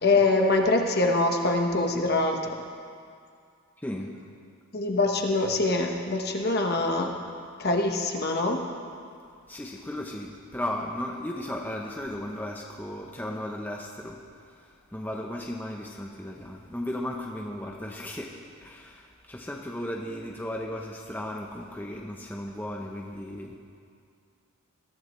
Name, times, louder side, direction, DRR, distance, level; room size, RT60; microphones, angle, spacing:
voice 1, 0.0-2.5 4.7-7.1 7.6-8.6, left 2 dB, 45° left, 2 dB, 1.3 m, -24 dB
voice 2, 3.8-4.1 9.5-23.6, left 1 dB, 10° left, -1 dB, 0.8 m, -36 dB
21.5 x 14.0 x 3.2 m, 2.3 s
head